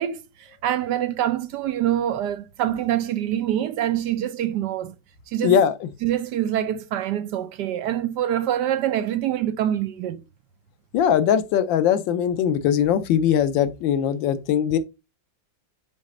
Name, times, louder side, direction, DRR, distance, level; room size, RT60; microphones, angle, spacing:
voice 1, 0.0-4.9 5.3-5.6 6.0-10.2, right 11 dB, 70° right, 1.2 m, -25 dB
voice 2, 5.4-5.9 10.9-14.8, left 9 dB, 90° left, 1.4 m, -20 dB
6.4 x 4.1 x 3.7 m
omnidirectional pair, 2.0 m